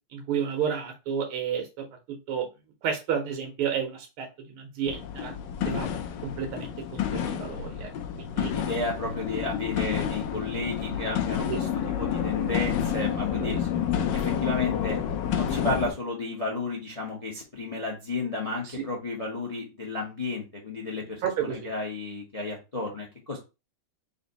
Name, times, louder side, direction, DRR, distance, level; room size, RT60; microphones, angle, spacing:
voice 1, 0.1-2.5 2.8-5.3 5.7-5.9 6.2-7.9 8.2-8.5 11.5-11.6 13.3-13.7 18.6-18.8 21.2-21.7, right 7 dB, 85° right, 2 dB, 1.8 m, -31 dB
sound 1, 4.9-15.9, left 9 dB, 75° left, 1.1 m, -29 dB
voice 2, 8.5-11.7 12.0-13.6 14.2-15.0 15.3-23.4, left 2 dB, 45° left, -1 dB, 0.4 m, -32 dB
4.1 x 2.6 x 3.9 m, 0.28 s
omnidirectional pair, 2.4 m